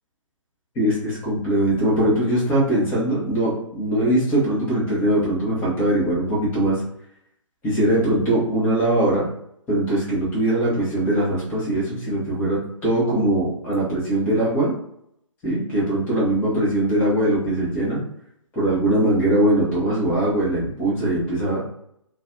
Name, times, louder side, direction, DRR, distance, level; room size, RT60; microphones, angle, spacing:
voice 1, 0.7-6.8 7.6-9.3 9.7-14.7 15.4-18.0 18.6-21.6, right 1 dB, 10° left, -8 dB, 0.7 m, -21 dB
2.4 x 2.2 x 2.5 m, 0.72 s
figure-of-eight pair, 140°, 17 cm